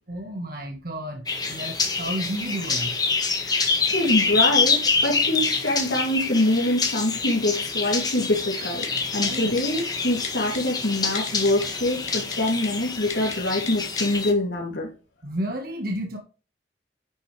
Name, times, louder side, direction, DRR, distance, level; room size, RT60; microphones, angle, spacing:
voice 1, 0.1-2.9 9.2-9.5 15.2-16.2, right 1 dB, 55° right, 2 dB, 1.6 m, -32 dB
sound 1, 1.3-14.3, left 4 dB, 20° left, 1.5 m, -26 dB
voice 2, 3.4-14.9, left 1 dB, 85° left, -4 dB, 2.9 m, -25 dB
Typing, 8.8-9.0 9.3-9.8 10.2-10.6 11.1-11.7 12.1-12.7 13.1-13.4 13.7-13.8 14.0-14.1, left 6 dB, 40° left, 2.0 m, -33 dB
11.0 x 6.4 x 3.3 m, 0.34 s
head